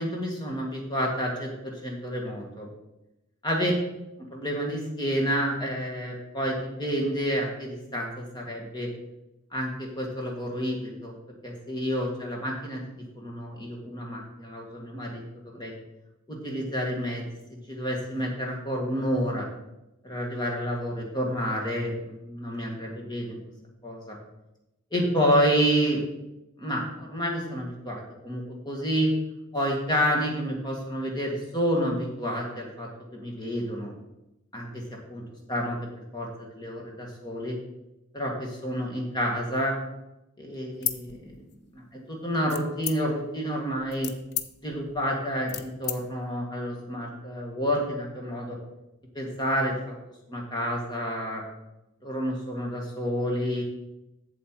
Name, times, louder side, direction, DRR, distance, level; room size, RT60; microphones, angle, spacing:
voice 1, 0.0-2.7 3.4-3.7 4.3-8.9 9.5-11.2 11.4-12.8 13.2-15.7 16.3-17.3 17.7-19.5 20.0-23.4 23.8-24.2 24.9-26.0 26.6-29.1 29.5-33.9 34.5-34.8 35.1-35.2 35.5-35.8 36.1-37.6 38.1-39.7 40.4-41.3 41.7-44.1 44.6-48.6 49.1-49.9 50.3-51.4 52.0-53.6, equal, 20° left, 0 dB, 1.7 m, -29 dB
sound 1, 40.7-41.8 42.5-43.3 43.8-46.0, left 10 dB, 50° left, 0.6 m, -34 dB
7.7 x 7.4 x 4.6 m, 0.92 s
head